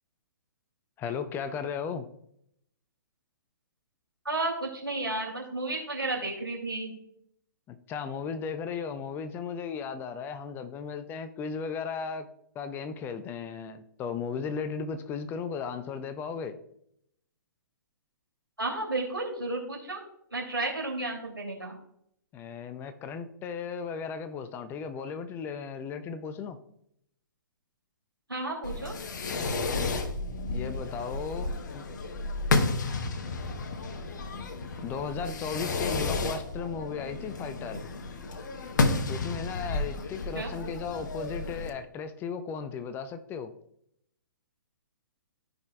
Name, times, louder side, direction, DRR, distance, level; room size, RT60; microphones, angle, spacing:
voice 1, 1.0-2.1 7.7-12.3 12.5-16.6 22.3-26.6 30.5-31.9 34.8-37.8 39.1-43.5, left 6 dB, 20° left, 10 dB, 0.5 m, -36 dB
voice 2, 4.2-6.9 18.6-20.0 20.3-21.7 28.3-29.0 40.3-40.5, right 2 dB, 85° right, -1 dB, 2.8 m, -32 dB
Fireworks, 28.6-41.7, left 3 dB, 55° left, 1.0 m, -32 dB
14.0 x 5.3 x 2.3 m, 0.73 s
figure-of-eight pair, 120°, 12 cm